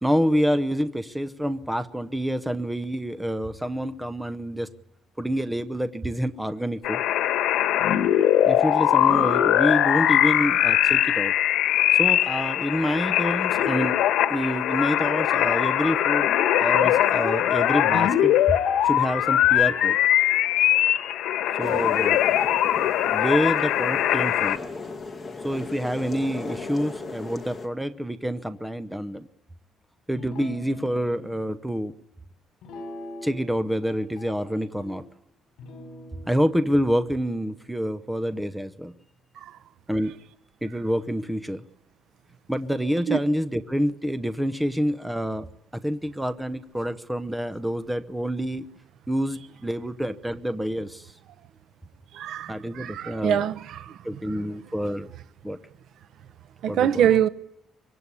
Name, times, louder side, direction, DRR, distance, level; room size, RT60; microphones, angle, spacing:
voice 1, 0.0-4.7 5.2-7.0 8.5-11.3 11.9-20.0 21.6-22.2 23.1-24.6 25.4-29.3 30.1-31.9 33.2-35.0 36.3-38.9 39.9-40.2 40.6-41.6 42.5-45.5 45.7-48.7 49.1-51.1 52.5-53.5 54.0-55.1 55.4-55.6 56.7-57.1, equal, 5° right, 0.9 m, -27 dB
sound 1, 6.8-24.6, left 12 dB, 85° left, 1.5 m, -21 dB
sound 2, 21.6-27.7, left 3 dB, 20° left, 2.5 m, -37 dB
Guitar, 30.1-31.3 32.6-33.5 33.8-35.0 35.6-39.1, left 1 dB, 60° left, 5.8 m, -44 dB
voice 2, 52.1-54.0 56.6-57.3, right 9 dB, 65° right, 0.9 m, -24 dB
24.5 x 22.5 x 8.4 m
cardioid pair, 150°, 0 cm